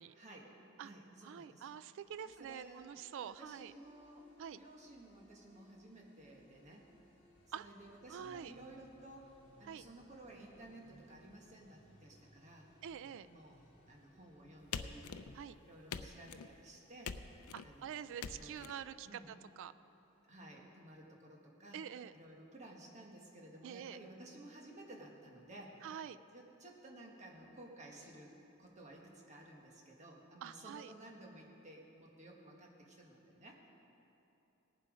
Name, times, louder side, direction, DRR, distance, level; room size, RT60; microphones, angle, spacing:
voice 1, 0.1-1.8 2.2-2.9 3.2-6.9 7.5-12.7 13.3-15.1 15.6-17.1 17.6-19.3 20.3-21.8 22.1-26.0 26.3-28.3 28.6-33.7, right 1 dB, 30° right, -1 dB, 1.5 m, -55 dB
voice 2, 1.2-3.7 4.4-4.6 7.5-7.7 8.1-8.5 9.7-9.8 12.8-13.3 15.4-15.6 17.5-19.2 19.6-19.7 21.7-22.1 23.6-24.0 25.8-26.2 30.4-30.9, right 8 dB, 55° right, 14 dB, 0.3 m, -46 dB
sound 1, 2.0-20.6, equal, 25° left, 3.3 m, -71 dB
sound 2, 6.5-15.5, equal, 40° left, 3.3 m, -67 dB
sound 3, 14.7-15.5 15.9-16.5 17.0-17.7 18.2-18.7, left 6 dB, 80° left, 0.5 m, -44 dB
18.0 x 7.6 x 4.9 m, 3.0 s
head